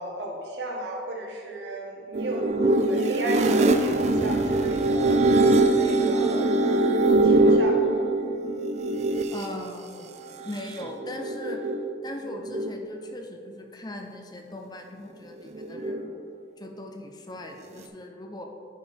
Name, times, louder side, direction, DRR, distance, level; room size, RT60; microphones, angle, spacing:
voice 1, 0.0-2.4 2.7-5.1 5.7-8.0, right 1 dB, 75° right, -1 dB, 1.4 m, -35 dB
sound 1, 2.1-9.5 10.4-11.9 12.3-12.9 15.4-16.2, right 2 dB, 40° right, 0.4 m, -22 dB
voice 2, 9.3-10.1 10.4-11.6 12.0-16.2 16.6-18.5, left 1 dB, 25° left, 3 dB, 0.6 m, -39 dB
10.5 x 5.0 x 3.5 m, 2.4 s
head